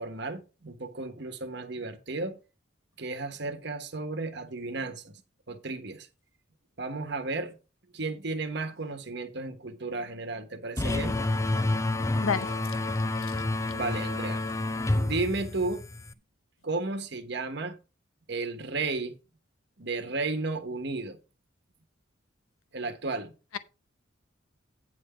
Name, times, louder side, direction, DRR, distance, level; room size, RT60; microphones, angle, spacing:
voice 1, 0.0-2.4 3.0-5.2 5.5-6.1 6.8-7.5 7.9-11.2 13.7-14.4 14.9-15.8 16.6-17.7 18.3-19.2 19.8-21.2 22.7-23.3, right 3 dB, 55° right, 1.2 m, -33 dB
sound 1, 10.8-16.1, left 2 dB, 15° left, 0.4 m, -29 dB
voice 2, 12.2-12.7 13.1-13.3, left 6 dB, 90° left, 0.7 m, -31 dB
9.5 x 3.7 x 6.9 m
head